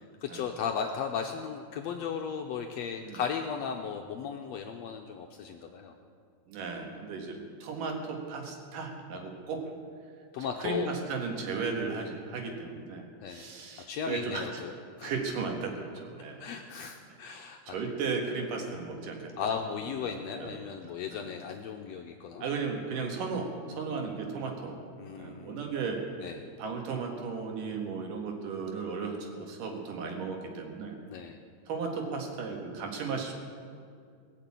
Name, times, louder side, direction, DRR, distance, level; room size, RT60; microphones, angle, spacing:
voice 1, 0.0-5.9 10.3-10.9 13.2-13.5 13.9-15.1 16.4-17.7 18.4-18.5 19.4-22.4 25.0-25.6 26.2-26.4 31.1-31.4, left 7 dB, 80° left, 3 dB, 1.6 m, -36 dB
voice 2, 6.5-9.7 10.6-14.6 15.0-16.4 17.7-19.5 20.0-20.7 21.1-21.3 22.4-24.8 25.2-26.0 26.6-30.9 31.7-33.3, right 4 dB, 90° right, 2 dB, 3.3 m, -35 dB
19.0 x 6.7 x 8.5 m, 2.2 s
omnidirectional pair, 3.7 m